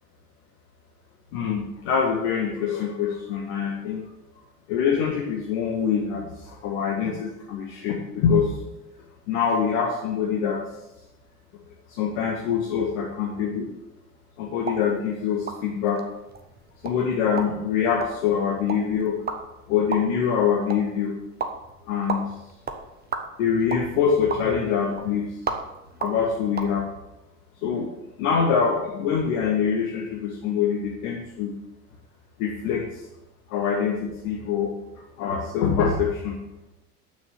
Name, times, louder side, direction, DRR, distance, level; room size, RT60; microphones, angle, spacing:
voice 1, 1.3-4.1 4.7-8.5 9.3-10.6 11.9-13.7 14.4-16.0 16.8-19.2 19.7-21.1 21.9-22.2 23.4-25.3 26.0-26.9 27.6-27.9 28.2-31.5 32.4-32.8 33.5-34.7 35.2-36.4, left 7 dB, 55° left, 0 dB, 1.8 m, -24 dB
sound 1, 14.6-26.7, right 4 dB, 20° right, 1.4 m, -36 dB
9.3 x 7.1 x 7.7 m, 0.92 s
figure-of-eight pair, 70°, 46 cm